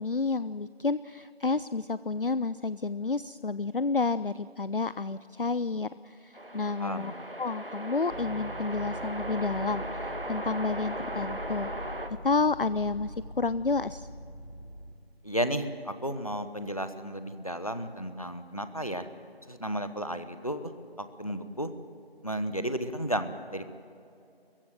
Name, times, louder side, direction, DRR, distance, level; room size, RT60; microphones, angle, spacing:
voice 1, 0.0-7.1 7.4-11.7 12.2-14.1, left 4 dB, 60° left, 16 dB, 0.4 m, -30 dB
sound 1, 6.3-12.1, right 1 dB, 60° right, 1.7 m, -37 dB
voice 2, 6.6-7.1 15.2-19.1 19.5-20.7 21.0-21.7 22.2-23.7, equal, 35° left, 10 dB, 1.0 m, -33 dB
sound 2, 8.1-15.0, equal, 80° left, 3.6 m, -43 dB
23.0 x 15.0 x 9.2 m, 2.5 s
figure-of-eight pair, 175°, 31 cm